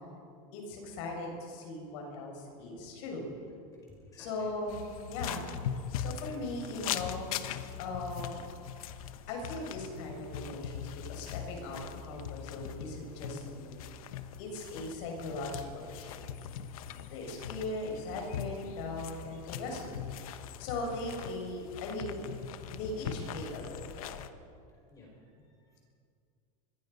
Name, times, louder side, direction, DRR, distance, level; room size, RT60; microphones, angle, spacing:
voice 1, 0.5-3.3 4.2-5.4 6.0-7.3 7.8-8.4 9.3-13.8 14.4-16.2 17.1-20.1 20.6-22.2 22.7-24.2, left 2 dB, 55° left, 1 dB, 6.5 m, -39 dB
voice 2, 3.7-4.5 8.8-9.2 24.7-25.8, left 2 dB, 20° left, -1 dB, 5.1 m, -58 dB
sound 1, 4.7-24.3, left 9 dB, 75° left, 1.3 m, -41 dB
25.5 x 22.0 x 5.5 m, 2.4 s
supercardioid pair, 170°, 18 cm